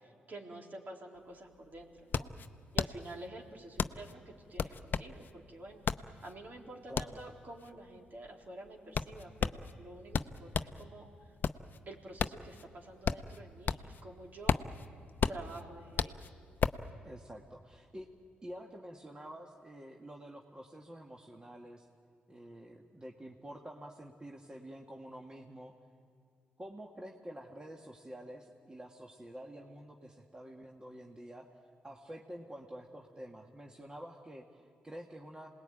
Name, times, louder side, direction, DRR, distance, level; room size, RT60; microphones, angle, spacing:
voice 1, 0.3-2.3 2.7-5.8 6.2-11.3 11.9-14.6 15.3-16.2, right 1 dB, 50° right, 0 dB, 3.9 m, -49 dB
sound 1, 1.2-1.3 1.5-10.8 11.2-14.0 14.3-16.9, left 6 dB, 55° left, 0.7 m, -34 dB
voice 2, 6.9-7.2 17.0-18.1 18.4-21.9 22.3-25.7 26.6-31.5 31.8-35.5, right 1 dB, 20° right, 1 dB, 1.8 m, -48 dB
27.5 x 20.0 x 9.1 m, 2.4 s
supercardioid pair, 60°, 4 cm